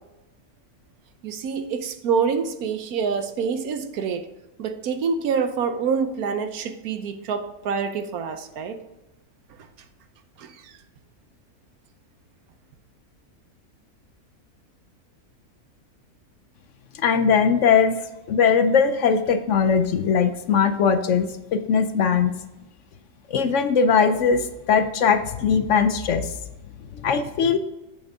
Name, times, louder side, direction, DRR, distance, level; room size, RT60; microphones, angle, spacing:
voice 1, 1.2-4.3 4.6-8.8 10.4-10.7, right 6 dB, 75° right, 8 dB, 1.3 m, -26 dB
voice 2, 16.9-22.3 23.3-26.3 26.9-27.6, left 6 dB, 65° left, 9 dB, 0.8 m, -20 dB
8.1 x 6.6 x 3.5 m, 0.98 s
omnidirectional pair, 1.6 m